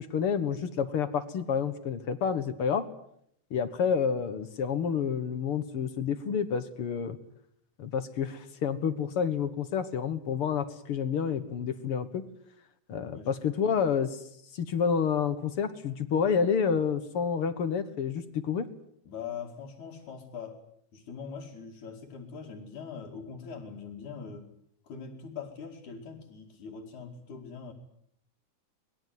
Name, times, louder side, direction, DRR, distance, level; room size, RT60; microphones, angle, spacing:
voice 1, 0.0-2.8 3.5-7.2 7.8-12.2 12.9-14.2 14.5-18.6, left 7 dB, 55° left, 12 dB, 2.0 m, -29 dB
voice 2, 19.1-20.6 20.9-24.5 24.8-27.7, left 6 dB, 75° left, -2 dB, 4.1 m, -42 dB
25.0 x 21.0 x 9.4 m, 0.71 s
omnidirectional pair, 3.5 m